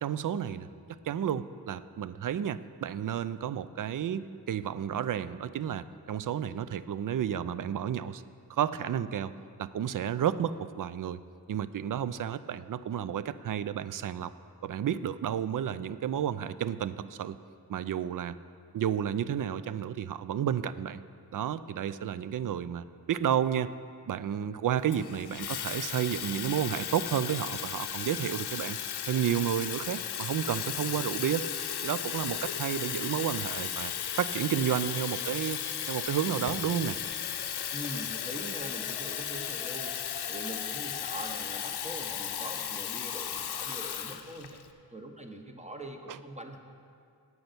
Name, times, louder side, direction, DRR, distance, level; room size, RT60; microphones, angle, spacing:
voice 1, 0.0-0.7 1.0-8.2 8.5-9.3 9.6-11.2 11.5-14.3 14.6-17.4 17.7-18.4 18.7-21.0 21.3-23.7 24.1-28.8 29.1-31.5 31.8-35.6 35.9-37.0 46.1-46.2, right 9 dB, 55° right, 15 dB, 0.5 m, -31 dB
Water tap faucet / Fill (with liquid), 24.9-44.7, left 9 dB, 70° left, 0.6 m, -35 dB
voice 2, 37.7-39.9 40.3-44.6 44.9-46.6, right 1 dB, 15° right, 4 dB, 1.0 m, -42 dB
8.6 x 5.6 x 8.0 m, 2.4 s
cardioid pair, 40°, 40 cm